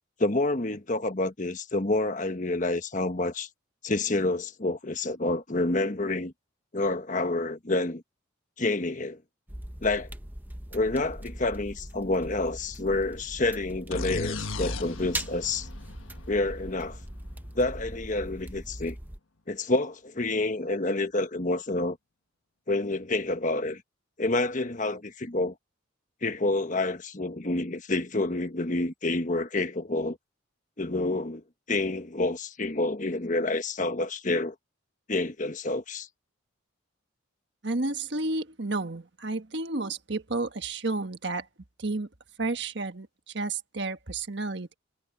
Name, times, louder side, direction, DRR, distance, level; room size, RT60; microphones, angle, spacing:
voice 1, 0.2-3.5 3.8-6.3 6.7-8.0 8.6-9.2 9.8-10.1 10.7-15.7 16.3-17.0 17.5-18.9 19.5-22.0 22.7-23.8 24.2-25.5 26.2-30.2 30.8-31.4 31.7-34.5 35.1-36.1, left 2 dB, 40° left, 1.3 m, -28 dB
sound 1, 9.5-19.2, right 1 dB, 10° right, 0.9 m, -41 dB
sound 2, 13.9-17.6, left 3 dB, 90° left, 1.4 m, -36 dB
voice 2, 37.6-41.5 41.8-42.1 42.4-44.7, right 3 dB, 60° right, 1.5 m, -31 dB
head